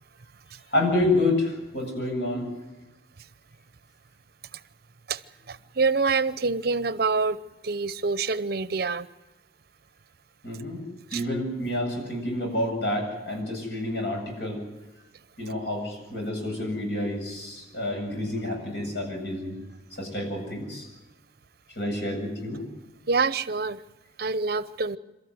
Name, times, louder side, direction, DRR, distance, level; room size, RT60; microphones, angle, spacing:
voice 1, 0.7-2.5 10.4-10.8 11.1-14.6 15.4-19.6 20.0-20.9 21.7-22.6, left 1 dB, 75° left, 8.0 m, -28 dB
voice 2, 5.5-7.4 7.6-9.1 11.1-11.2 23.1-23.8 24.2-25.0, right 4 dB, 60° right, 0.8 m, -26 dB
27.5 x 13.5 x 9.6 m
head